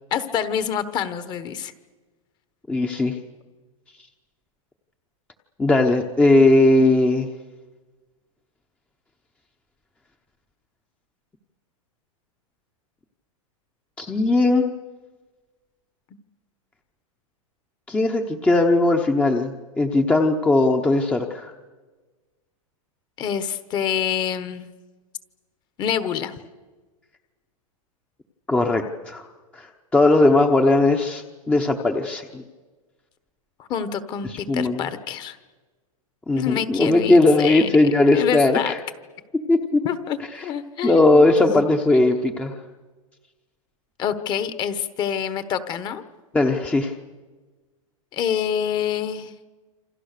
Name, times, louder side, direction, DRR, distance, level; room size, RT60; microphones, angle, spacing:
voice 1, 0.1-1.7 23.2-24.7 25.8-26.3 33.6-35.4 36.4-37.7 38.1-38.7 39.8-41.3 44.0-46.0 48.1-49.3, left 8 dB, 25° left, 12 dB, 1.2 m, -26 dB
voice 2, 2.7-3.2 5.6-7.3 14.0-14.7 17.9-21.5 28.5-29.2 29.5-29.7 29.9-32.4 34.3-34.9 36.3-38.8 39.5-39.8 40.8-42.5 46.3-46.9, left 2 dB, 5° left, 4 dB, 0.9 m, -18 dB
28.0 x 26.5 x 6.8 m, 1.3 s
supercardioid pair, 160°, 18 cm